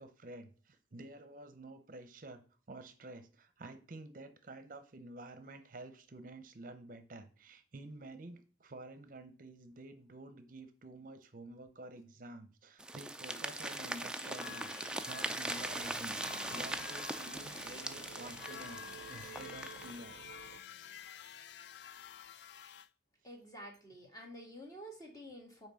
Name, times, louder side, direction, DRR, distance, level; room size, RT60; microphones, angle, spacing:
voice 1, 0.0-2.4 2.7-20.2 21.4-21.5, right 2 dB, 50° right, 10 dB, 0.7 m, -50 dB
sound 1, 12.8-20.0, right 2 dB, 5° right, 0.4 m, -41 dB
sound 2, 13.3-22.9, left 9 dB, 70° left, 0.4 m, -50 dB
sound 3, 15.5-20.6, right 9 dB, 90° right, 0.3 m, -54 dB
voice 2, 23.2-25.7, equal, 20° left, 1 dB, 1.9 m, -50 dB
5.9 x 4.5 x 6.3 m, 0.39 s
head